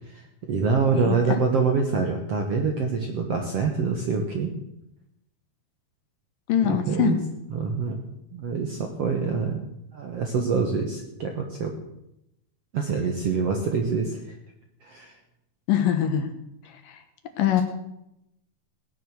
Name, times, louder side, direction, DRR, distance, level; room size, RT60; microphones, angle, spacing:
voice 1, 0.1-4.5 6.6-7.2 7.5-8.0 8.3-9.7 9.9-11.7 12.7-14.4 14.8-15.2, right 5 dB, 60° right, 3 dB, 1.6 m, -26 dB
voice 2, 0.9-1.4 6.5-7.1 15.7-16.3 16.9-17.0 17.4-17.6, left 9 dB, 70° left, 7 dB, 2.6 m, -23 dB
17.0 x 10.5 x 6.3 m, 0.84 s
omnidirectional pair, 4.5 m